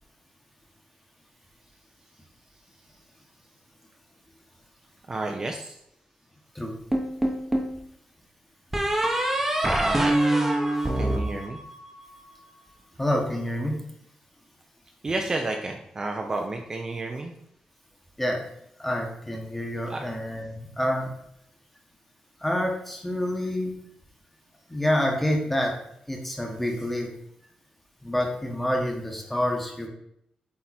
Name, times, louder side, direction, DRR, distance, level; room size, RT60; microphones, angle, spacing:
voice 1, 5.1-5.8 9.8-10.1 11.0-11.6 15.0-17.3 19.9-20.0, right 2 dB, 25° right, 2 dB, 0.6 m, -31 dB
sound 1, 6.9-7.8 8.7-12.1, right 1 dB, 10° right, 1.0 m, -24 dB
voice 2, 13.0-13.8 18.2-18.4 18.8-21.1 22.4-23.7 24.7-25.7 26.1-27.1 28.0-29.9, left 1 dB, 5° left, 1 dB, 1.3 m, -27 dB
8.5 x 3.8 x 4.3 m, 0.74 s
wide cardioid pair, 155°, 2 cm